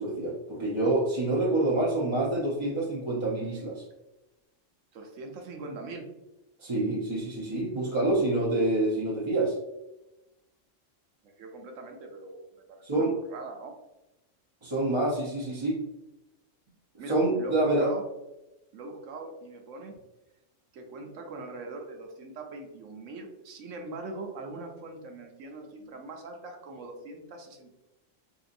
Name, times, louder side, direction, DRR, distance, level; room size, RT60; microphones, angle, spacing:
voice 1, 0.0-3.8 6.6-9.6 12.8-13.1 14.6-15.8 17.1-17.9, right 2 dB, 35° right, -5 dB, 0.5 m, -27 dB
voice 2, 4.9-6.1 11.4-13.8 17.0-18.0 18.7-19.9 20.7-27.7, right 2 dB, 90° right, 3 dB, 1.0 m, -42 dB
3.8 x 2.7 x 2.5 m, 0.96 s
omnidirectional pair, 1.3 m